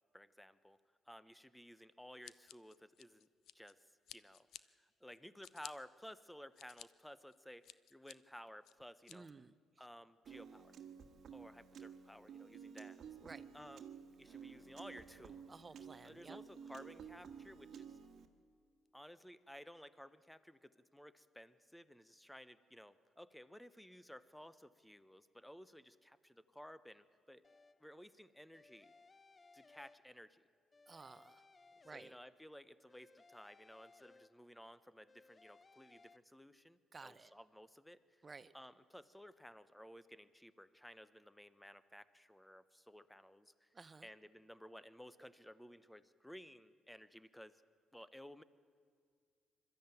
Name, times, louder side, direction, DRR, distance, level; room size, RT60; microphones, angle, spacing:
voice 1, 0.1-0.8 1.1-3.3 3.5-9.3 9.8-10.7 11.3-13.0 13.5-13.8 14.2-15.5 16.0-18.0 18.9-27.4 27.8-28.9 29.5-30.4 31.9-38.2 38.5-43.7 44.0-47.6 47.9-48.4, equal, 5° left, 15 dB, 0.9 m, -56 dB
Scissors, 2.2-3.7 4.1-4.6 5.1-5.7 6.3-6.9 7.3-8.1 8.6-9.2, left 11 dB, 75° left, 0.5 m, -54 dB
voice 2, 9.1-9.5 13.2-13.5 15.5-16.4 30.9-31.4 31.8-32.2 36.9-37.3 38.2-38.5 43.7-44.1, right 4 dB, 30° right, 15 dB, 0.8 m, -54 dB
Piano, 10.3-18.3, right 7 dB, 60° right, 1.5 m, -53 dB
sound 1, 27.4-28.0 28.5-30.4 30.7-32.5 32.9-34.7 35.1-36.2, left 3 dB, 30° left, 0.5 m, -65 dB
22.0 x 13.0 x 9.1 m, 2.1 s
supercardioid pair, 70°, 0 cm